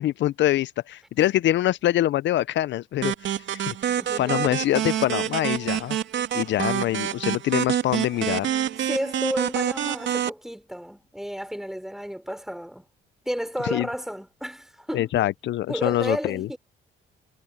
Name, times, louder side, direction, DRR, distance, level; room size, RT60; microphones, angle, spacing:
voice 1, 0.0-6.0 6.3-8.5 13.7-13.9 14.9-16.5, left 13 dB, 65° left, 0.5 m, -25 dB
sound 1, 3.0-10.3, right 10 dB, 75° right, 2.5 m, -27 dB
voice 2, 4.0-4.7 8.9-12.9 13.3-15.3 15.7-16.6, equal, ahead, 3.9 m, -32 dB
cardioid pair, 90°, 20 cm